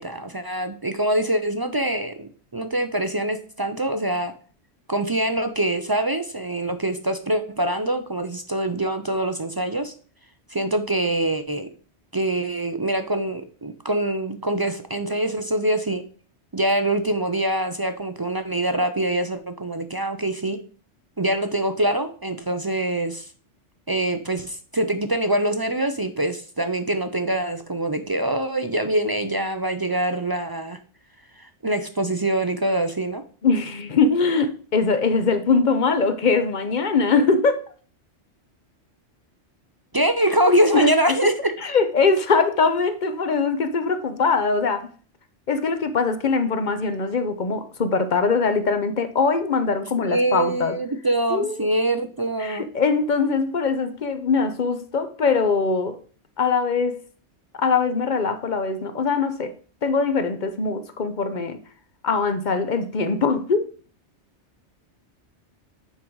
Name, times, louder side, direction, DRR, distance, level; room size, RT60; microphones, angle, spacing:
voice 1, 0.0-4.3 4.9-9.9 10.5-11.7 12.1-16.0 16.5-20.6 21.2-23.3 23.9-30.8 31.4-33.2 39.9-41.5 50.0-52.6, right 1 dB, 35° right, 0.3 m, -24 dB
voice 2, 33.4-37.6 40.5-40.9 41.6-44.9 45.5-50.8 51.3-51.7 52.4-56.0 56.4-57.0 57.6-59.6 59.8-61.6 62.0-63.7, left 4 dB, 45° left, 0.8 m, -22 dB
9.1 x 3.9 x 4.6 m
omnidirectional pair, 1.2 m